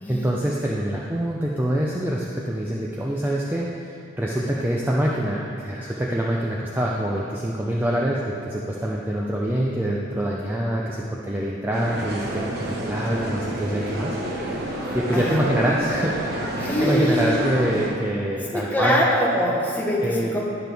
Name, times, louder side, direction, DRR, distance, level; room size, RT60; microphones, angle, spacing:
voice 1, 0.1-14.2 14.9-16.5 16.8-19.0 20.0-20.3, right 1 dB, 10° right, -3 dB, 0.4 m, -25 dB
sound 1, 11.7-17.9, right 1 dB, 50° right, 1.1 m, -28 dB
voice 2, 14.8-15.4 16.6-17.4 17.8-17.9 18.5-20.5, equal, 10° left, -4 dB, 1.0 m, -24 dB
11.0 x 6.0 x 3.4 m, 2.6 s
head